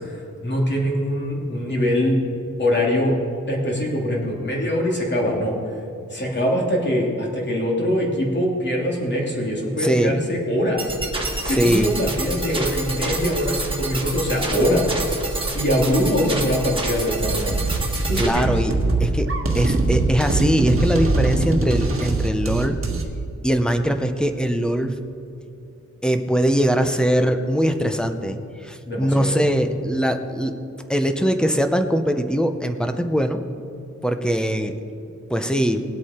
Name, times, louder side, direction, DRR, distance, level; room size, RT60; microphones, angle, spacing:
voice 1, 0.0-2.2 2.6-3.2 3.5-5.6 6.1-10.9 11.5-14.9 15.5-17.6 18.1-18.5 28.9-29.4, equal, 35° left, -3 dB, 2.7 m, -23 dB
voice 2, 9.8-10.2 11.4-11.9 18.2-18.7 19.0-19.3 19.5-22.8 23.4-25.0 26.0-30.6 30.9-33.4 34.0-34.7 35.3-35.8, equal, 5° left, 7 dB, 0.7 m, -21 dB
sound 1, 10.8-18.3, right 2 dB, 15° right, 1.9 m, -27 dB
sound 2, 17.2-23.0, right 3 dB, 45° right, 1.4 m, -22 dB
20.0 x 7.9 x 4.3 m, 2.7 s
wide cardioid pair, 145°, 30 cm